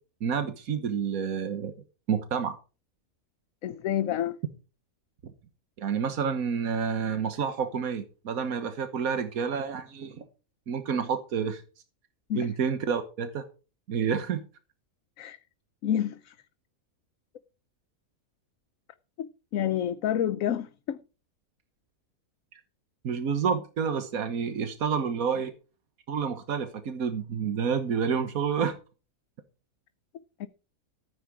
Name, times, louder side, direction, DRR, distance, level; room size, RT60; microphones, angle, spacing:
voice 1, 0.2-1.7 2.1-2.6 5.8-10.2 10.7-11.6 12.3-13.4 13.9-14.4 23.0-25.5 26.1-28.7, right 6 dB, 85° right, 1.6 m, -29 dB
voice 2, 3.6-4.4 12.3-12.5 15.2-15.4 15.8-16.4 19.2-21.0 30.4-30.5, left 10 dB, 75° left, 1.1 m, -29 dB
14.0 x 8.3 x 4.8 m
omnidirectional pair, 1.5 m